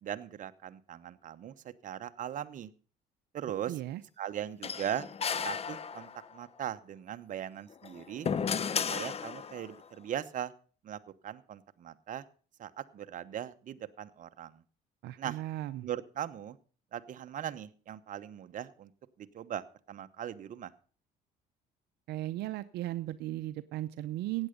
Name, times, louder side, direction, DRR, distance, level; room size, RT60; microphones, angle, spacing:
voice 1, 0.0-2.7 3.3-3.8 4.2-5.1 5.4-8.3 8.9-10.5 10.8-12.2 12.6-14.6 15.2-15.4 15.8-16.6 16.9-18.9 19.2-20.7, right 10 dB, 50° right, 10 dB, 1.0 m, -39 dB
voice 2, 3.7-4.0 15.0-15.9 22.1-24.5, right 15 dB, 75° right, 13 dB, 0.6 m, -36 dB
sound 1, 4.6-6.4 7.7-9.7, left 6 dB, 35° left, 0.9 m, -34 dB
15.5 x 9.0 x 5.2 m, 0.40 s
cardioid pair, 110°, 17 cm